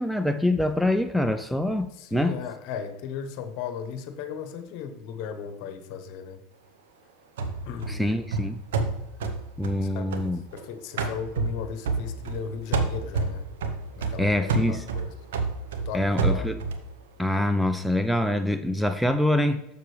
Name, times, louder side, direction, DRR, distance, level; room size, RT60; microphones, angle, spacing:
voice 1, 0.0-2.3 7.9-8.6 9.6-10.4 14.2-14.8 15.9-16.6 17.2-19.7, left 1 dB, ahead, 7 dB, 0.4 m, -25 dB
voice 2, 2.0-6.4 7.7-8.0 9.8-10.1 10.5-13.5 14.0-15.1 15.8-16.5, left 7 dB, 60° left, 8 dB, 1.0 m, -36 dB
sound 1, 7.4-10.6 11.0-12.4 12.7-16.9, right 4 dB, 80° right, 0.9 m, -29 dB
7.0 x 6.6 x 3.3 m, 0.91 s
hypercardioid pair, 95°, 0 cm